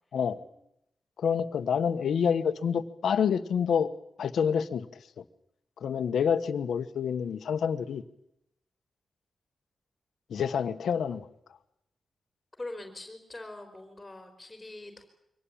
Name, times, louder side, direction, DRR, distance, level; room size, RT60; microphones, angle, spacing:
voice 1, 1.2-3.9 4.2-5.2 5.8-8.0 10.3-11.3, left 7 dB, 90° left, 10 dB, 1.2 m, -28 dB
voice 2, 12.6-15.1, left 2 dB, 15° left, 5 dB, 4.0 m, -43 dB
24.0 x 18.5 x 8.8 m, 0.81 s
wide cardioid pair, 105°, 0 cm